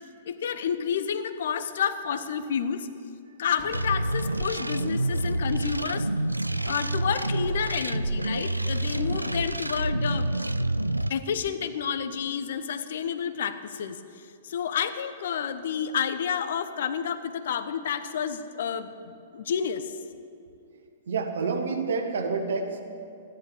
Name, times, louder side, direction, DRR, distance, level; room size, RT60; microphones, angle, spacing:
voice 1, 0.3-2.9 3.4-6.1 6.7-10.3 11.1-14.0 14.4-19.9, left 7 dB, 55° left, 11 dB, 0.8 m, -30 dB
Gunshot gunfire, 3.6-6.3 6.7-10.2, right 2 dB, 15° right, 3.1 m, -48 dB
sound 1, 3.7-11.1, right 1 dB, 85° right, 0.4 m, -28 dB
voice 2, 21.1-22.8, right 4 dB, 60° right, 4 dB, 1.6 m, -28 dB
14.0 x 10.5 x 7.3 m, 2.5 s
figure-of-eight pair, 110°, 0 cm